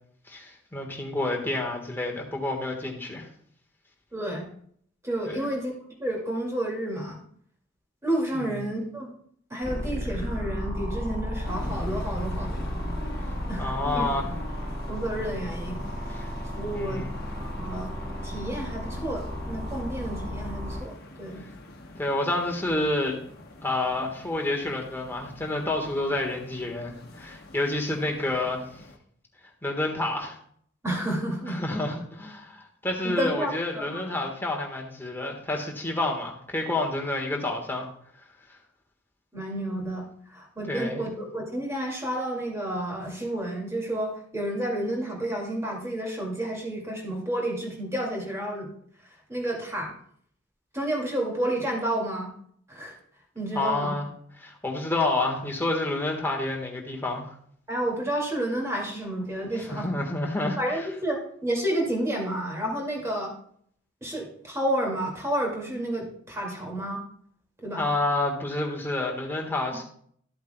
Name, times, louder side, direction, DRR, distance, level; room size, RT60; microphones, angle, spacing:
voice 1, 0.3-3.3 5.3-5.5 8.3-8.6 13.6-14.3 16.2-16.3 16.7-17.2 22.0-23.2 23.6-28.6 29.6-30.4 31.5-37.9 40.7-41.0 53.5-54.1 54.4-57.3 59.7-60.6 67.8-69.8, left 2 dB, 10° left, 0 dB, 1.5 m, -29 dB
voice 2, 4.1-4.5 5.0-5.7 6.0-7.2 8.0-9.1 9.5-12.6 13.5-14.0 14.9-15.8 16.5-17.0 17.3-17.9 18.2-21.5 30.8-31.6 33.0-34.0 39.3-48.7 49.3-49.9 50.7-52.3 52.7-53.0 53.3-54.0 57.7-60.0 60.6-63.3 64.0-67.0 67.6-67.9, right 1 dB, 15° right, -1 dB, 2.3 m, -30 dB
sound 1, 9.6-20.8, equal, 45° right, 2.4 m, -33 dB
sound 2, 11.4-29.0, left 1 dB, 55° left, 1.1 m, -43 dB
13.5 x 8.0 x 2.3 m, 0.62 s
head